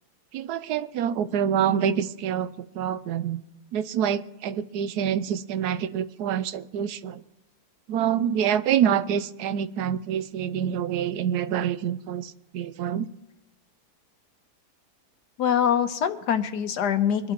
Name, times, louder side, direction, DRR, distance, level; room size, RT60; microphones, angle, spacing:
voice 1, 0.3-3.4 3.7-7.2 7.9-13.1, right 9 dB, 80° right, 14 dB, 1.1 m, -26 dB
voice 2, 15.4-17.3, left 8 dB, 85° left, 9 dB, 1.4 m, -24 dB
24.0 x 11.5 x 2.9 m, 0.98 s
omnidirectional pair, 1.7 m